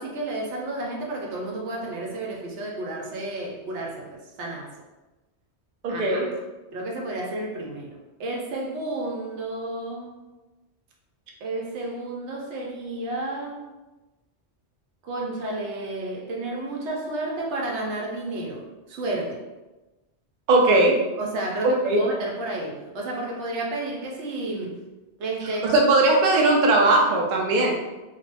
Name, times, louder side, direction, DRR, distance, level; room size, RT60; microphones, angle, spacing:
voice 1, 0.0-4.7 5.9-6.3 6.7-10.2 11.4-13.6 15.0-19.4 21.2-24.8 25.2-25.8, right 2 dB, 80° right, -1 dB, 0.9 m, -31 dB
voice 2, 5.8-6.3 20.5-20.9 21.8-22.0 25.7-27.7, right 2 dB, 60° right, -1 dB, 0.5 m, -19 dB
2.4 x 2.0 x 3.2 m, 1.1 s
omnidirectional pair, 1.2 m